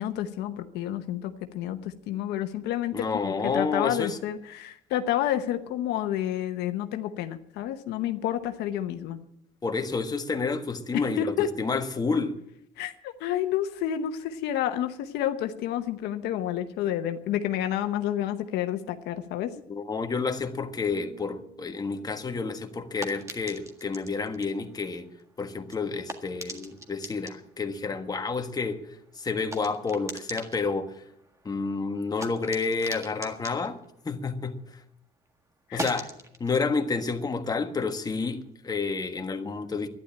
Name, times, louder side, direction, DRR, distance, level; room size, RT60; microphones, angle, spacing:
voice 1, 0.0-9.2 10.9-11.5 12.8-19.5 35.7-35.9, left 11 dB, 85° left, 1.0 m, -30 dB
voice 2, 2.9-4.2 9.6-12.4 19.7-25.1 25.4-28.9 29.1-31.0 31.4-33.8 34.0-34.8 35.7-36.1 36.4-39.9, left 4 dB, 25° left, 1.5 m, -30 dB
sound 1, 20.9-24.9 25.2-25.6, right 1 dB, 45° left, 2.8 m, -55 dB
sound 2, 22.2-34.9 35.2-38.5, right 1 dB, 15° right, 1.7 m, -43 dB
12.0 x 10.5 x 8.8 m
cardioid pair, 110°, 17 cm